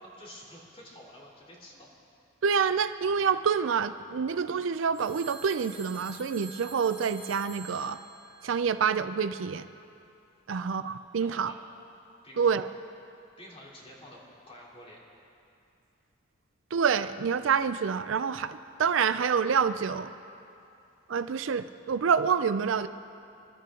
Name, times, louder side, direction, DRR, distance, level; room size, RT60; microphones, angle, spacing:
voice 1, 0.0-1.9 10.5-10.7 11.2-11.5 12.2-12.7 13.4-15.0, left 1 dB, 30° left, -5 dB, 3.2 m, -49 dB
voice 2, 2.4-8.0 8.4-9.7 10.5-11.5 12.4-12.7 16.7-20.1 21.1-22.9, right 6 dB, 70° right, 12 dB, 0.4 m, -27 dB
Telephone, 4.9-9.2, right 5 dB, 15° right, 2.7 m, -47 dB
27.5 x 12.5 x 3.8 m, 2.6 s
head